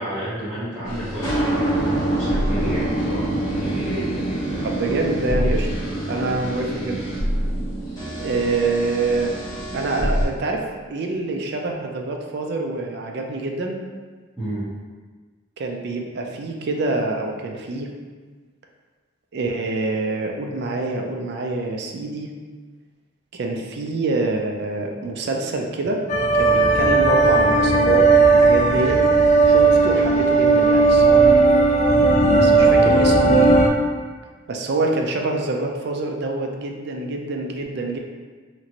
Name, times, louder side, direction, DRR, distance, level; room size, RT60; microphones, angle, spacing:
voice 1, 0.0-4.7 7.8-8.0 14.4-14.6 32.2-32.5, equal, 10° right, -17 dB, 1.1 m, -31 dB
sound 1, 0.9-10.3, right 1 dB, 20° left, 1.0 m, -25 dB
voice 2, 4.6-5.7 6.1-7.0 8.2-9.3 9.7-10.6 10.9-13.8 15.6-17.9 19.3-22.3 23.3-26.0 26.3-29.0 29.5-31.3 32.4-33.6 34.5-38.0, right 2 dB, 55° right, 2 dB, 0.3 m, -26 dB
sound 2, 26.1-33.7, right 3 dB, 35° left, 0.3 m, -15 dB
2.9 x 2.5 x 2.8 m, 1.4 s
head